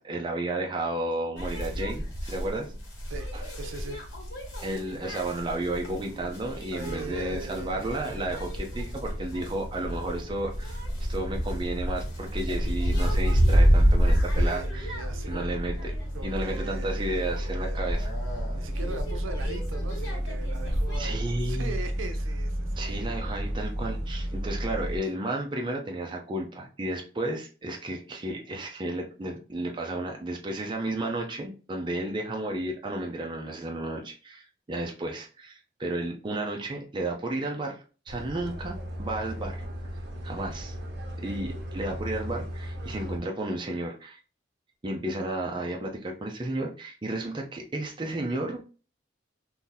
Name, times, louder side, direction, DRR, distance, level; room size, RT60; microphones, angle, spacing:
voice 1, 0.0-2.7 3.3-3.4 4.6-14.9 15.3-15.9 16.2-18.1 21.0-21.7 22.8-37.8 38.1-39.6 40.2-40.7 41.2-44.2 44.8-48.6, right 1 dB, 25° right, 0.4 m, -32 dB
sound 1, 1.4-21.0, equal, 65° left, 1.4 m, -29 dB
voice 2, 3.1-4.0 6.7-8.0 11.9-12.0 14.1-15.6 16.1-17.8 18.5-23.1, right 3 dB, 85° right, 0.6 m, -40 dB
sound 2, 6.8-25.0, equal, 40° left, 1.5 m, -34 dB
sound 3, 38.1-43.2, equal, 55° right, 1.0 m, -37 dB
2.7 x 2.6 x 3.8 m
head